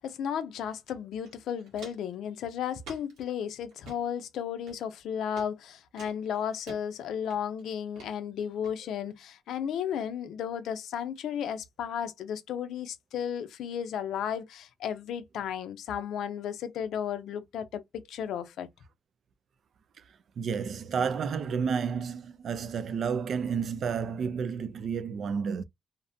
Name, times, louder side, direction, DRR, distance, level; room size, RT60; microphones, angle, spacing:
voice 1, 0.0-18.7, left 8 dB, 75° left, 0.4 m, -34 dB
Walk footsteps, 0.9-1.0 1.2-2.1 2.8-3.2 3.7-4.0 4.7-5.0 5.4-5.5 6.0-6.8 7.3-7.6 8.0-8.1 8.6-8.7, right 3 dB, 85° right, 1.4 m, -48 dB
voice 2, 20.4-25.6, right 6 dB, 60° right, 0.3 m, -31 dB
2.6 x 2.1 x 2.5 m
cardioid pair, 90°, 0 cm